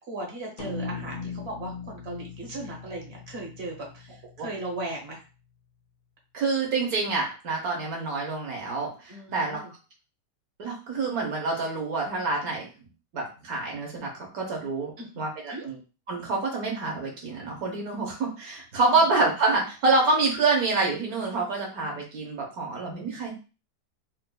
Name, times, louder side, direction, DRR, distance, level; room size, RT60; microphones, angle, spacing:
voice 1, 0.1-4.1 4.4-5.2 9.1-9.7 15.0-15.1 15.5-15.7 18.9-19.0, right 2 dB, 45° right, -1 dB, 1.1 m, -37 dB
sound 1, 0.6-5.1, left 4 dB, 80° left, 0.6 m, -39 dB
voice 2, 6.3-9.6 10.6-12.7 13.1-15.8 16.1-23.3, right 3 dB, 65° right, 0 dB, 1.4 m, -27 dB
4.3 x 2.5 x 2.2 m, 0.33 s
omnidirectional pair, 1.7 m